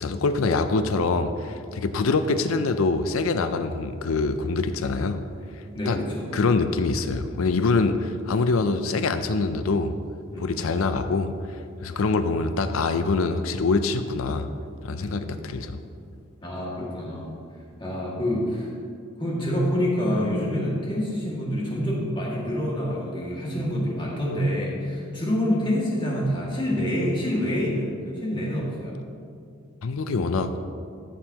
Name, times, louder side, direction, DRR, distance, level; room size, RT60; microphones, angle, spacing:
voice 1, 0.0-5.2 5.5-6.0 6.3-9.9 10.4-14.5 14.8-15.8 29.8-30.6, left 3 dB, 75° left, 10 dB, 0.5 m, -24 dB
voice 2, 5.7-6.5 10.3-10.7 15.0-15.6 16.4-17.3 17.8-18.7 19.2-29.0, equal, 25° left, -5 dB, 2.1 m, -27 dB
14.5 x 7.5 x 2.9 m, 2.3 s
head